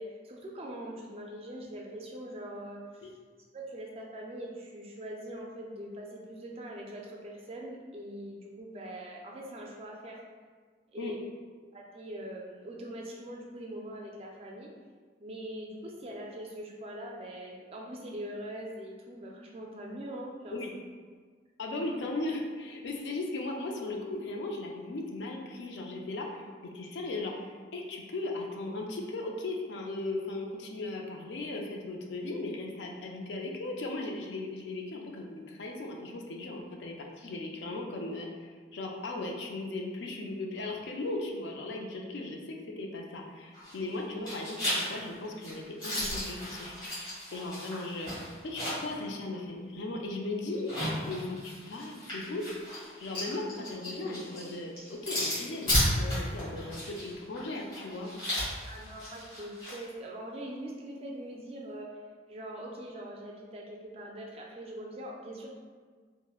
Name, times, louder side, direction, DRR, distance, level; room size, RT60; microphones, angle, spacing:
voice 1, 0.0-2.8 3.5-10.2 10.9-11.2 11.7-14.7 15.2-20.6 47.3-47.4 58.6-62.0 62.3-65.5, right 1 dB, 30° right, -1 dB, 0.3 m, -42 dB
voice 2, 21.6-26.4 26.7-46.7 47.3-52.5 53.0-58.1, left 2 dB, 70° left, 1 dB, 0.4 m, -37 dB
sound 1, 43.5-43.9 44.3-49.0 49.3-49.4 50.5-59.8, equal, 25° left, 1.4 m, -34 dB
3.6 x 2.0 x 2.3 m, 1.5 s
head